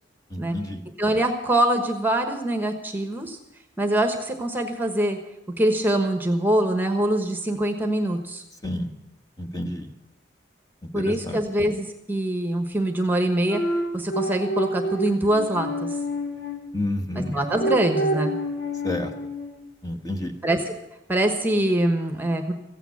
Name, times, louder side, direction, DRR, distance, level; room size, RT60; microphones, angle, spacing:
voice 1, 0.3-0.8 8.6-8.9 9.4-9.9 10.9-11.4 16.7-17.4 18.8-19.1 19.8-20.3, left 1 dB, 20° left, 3 dB, 1.3 m, -29 dB
voice 2, 1.0-3.4 3.8-5.2 5.6-8.4 10.9-13.6 13.9-15.9 17.1-18.4 20.4-20.7 21.1-22.5, right 1 dB, 10° right, 5 dB, 1.2 m, -24 dB
sound 1, 13.5-16.6 17.3-19.6, equal, 85° left, 4.6 m, -28 dB
15.5 x 9.0 x 8.4 m, 0.97 s
head